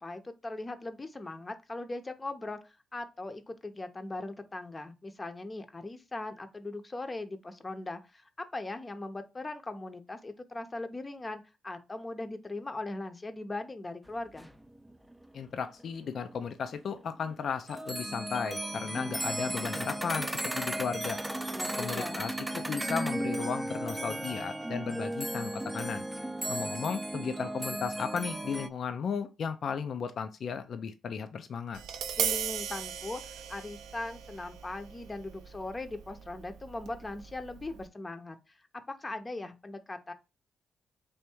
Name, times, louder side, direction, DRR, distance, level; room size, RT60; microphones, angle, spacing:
voice 1, 0.0-14.5 21.5-22.3 32.2-38.6 39.0-40.1, left 2 dB, 30° left, 0.7 m, -40 dB
sound 1, 14.1-14.2 14.3-16.4 16.7-16.8 17.2-17.3 17.7-28.7, right 1 dB, 10° right, 0.5 m, -35 dB
voice 2, 15.3-21.2 21.8-26.1 26.5-31.8, left 6 dB, 65° left, 0.4 m, -35 dB
Tap, 31.7-37.9, right 8 dB, 80° right, 0.4 m, -38 dB
3.4 x 2.6 x 4.4 m
supercardioid pair, 55°, 0 cm